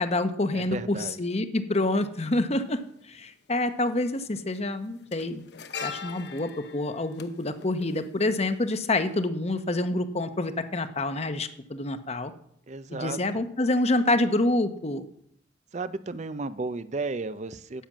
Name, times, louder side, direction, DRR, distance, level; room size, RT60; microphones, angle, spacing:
voice 1, 0.0-2.8 3.1-5.4 5.8-12.3 12.9-15.0, left 2 dB, 35° left, 10 dB, 0.9 m, -27 dB
voice 2, 0.5-1.2 12.7-13.2 15.7-17.8, right 3 dB, 40° right, 14 dB, 0.5 m, -33 dB
sound 1, 2.6-2.7 3.9-4.2 4.5-8.7 9.0-9.2, left 5 dB, 65° left, 0.9 m, -41 dB
10.0 x 9.0 x 7.3 m, 0.69 s
head